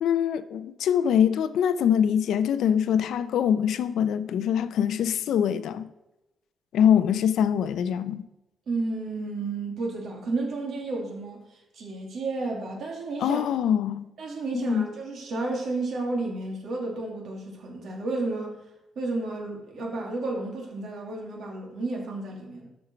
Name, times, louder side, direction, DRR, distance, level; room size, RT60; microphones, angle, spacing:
voice 1, 0.0-5.9 6.7-8.3 13.2-14.1 14.5-14.9, left 8 dB, 80° left, 0.6 m, -24 dB
voice 2, 8.7-13.4 14.2-18.6 19.0-22.7, right 3 dB, 60° right, 2.6 m, -32 dB
12.5 x 5.4 x 4.5 m
cardioid pair, 165°, 0 cm